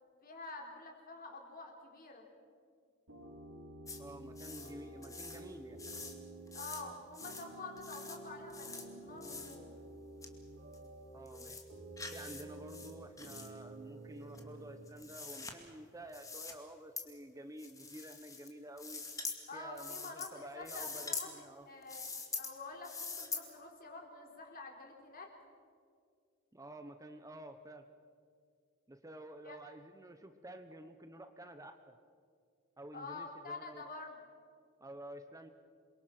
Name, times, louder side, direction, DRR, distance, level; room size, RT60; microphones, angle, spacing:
voice 1, 0.2-2.3 6.5-9.7 19.5-21.3 21.7-22.1 22.4-25.3 29.4-29.6 32.9-34.2, left 3 dB, 45° left, 1 dB, 3.8 m, -48 dB
sound 1, 3.1-14.9, right 2 dB, 85° right, 5.2 m, -50 dB
sound 2, 3.9-4.0 4.4-4.7 5.0-5.4 5.8-6.2 6.5-6.8 7.1-7.5 7.8-8.2 8.5-8.9 9.2-9.6 10.2-10.3 10.7-10.8 11.3-11.6 12.0-12.4 12.7-13.5 14.3-15.5 16.1-16.5 17.0-17.1 17.6-18.5 18.8-19.4 19.8-20.3 20.6-21.3 21.8-22.5 22.8-23.4, left 4 dB, 15° left, 2.2 m, -44 dB
voice 2, 4.0-5.8 11.1-11.6 12.1-19.0 19.5-21.7 26.5-27.8 28.9-32.0 32.8-33.8 34.8-35.5, right 1 dB, 15° right, 8 dB, 0.9 m, -50 dB
28.0 x 23.0 x 6.0 m, 2.2 s
head